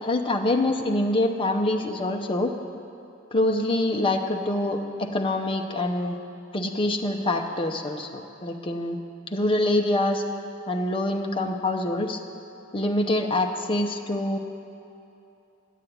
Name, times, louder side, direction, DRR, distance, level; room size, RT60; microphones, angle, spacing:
voice 1, 0.0-2.5 3.3-6.2 6.5-9.0 9.3-10.2 10.7-12.2 12.7-14.4, left 1 dB, 25° left, 4 dB, 0.7 m, -25 dB
10.0 x 7.3 x 9.3 m, 2.8 s
head